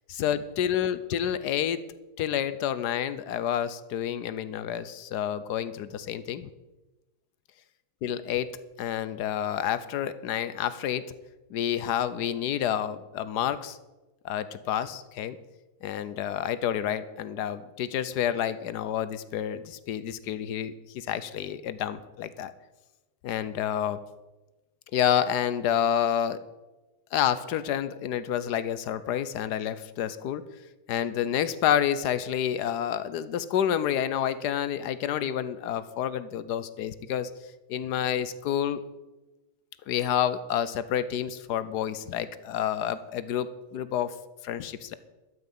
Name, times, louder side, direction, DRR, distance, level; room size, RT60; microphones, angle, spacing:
voice 1, 0.1-1.8 2.2-6.5 8.0-11.1 11.5-13.8 14.2-15.4 15.8-22.5 23.2-24.0 24.9-26.4 27.1-30.4 30.9-37.3 37.7-38.8 39.9-44.1 44.4-44.9, left 10 dB, 75° left, 14 dB, 1.3 m, -29 dB
13.0 x 5.9 x 9.0 m, 1.1 s
omnidirectional pair, 1.8 m